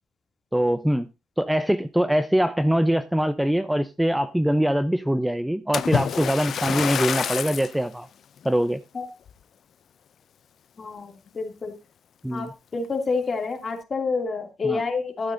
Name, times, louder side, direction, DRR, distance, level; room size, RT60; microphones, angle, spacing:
voice 1, 0.5-1.1 1.4-8.1 8.4-8.8 12.2-12.5 14.6-14.8, equal, 5° right, 11 dB, 0.6 m, -23 dB
Splash splatter, 5.7-7.8 8.4-8.7 9.3-9.4, left 8 dB, 60° left, 0.5 m, -27 dB
voice 2, 10.8-11.7 12.3-15.3, left 4 dB, 35° left, 4 dB, 2.6 m, -28 dB
12.5 x 8.5 x 2.7 m, 0.26 s
supercardioid pair, 75°, 0 cm